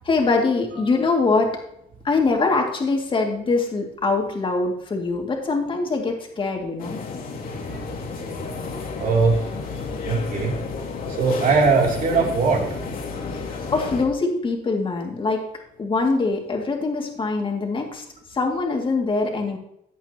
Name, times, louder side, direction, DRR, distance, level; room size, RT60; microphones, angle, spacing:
voice 1, 0.1-1.5 2.0-7.0 13.3-15.4 15.8-18.0 18.3-19.6, left 3 dB, 30° left, 1 dB, 2.4 m, -23 dB
sound 1, 6.8-14.0, left 4 dB, 55° left, 2.3 m, -31 dB
voice 2, 9.0-9.4 10.0-10.5 11.1-12.7, right 4 dB, 55° right, 0 dB, 3.0 m, -20 dB
15.0 x 9.2 x 2.9 m, 0.78 s
cardioid pair, 110°, 17 cm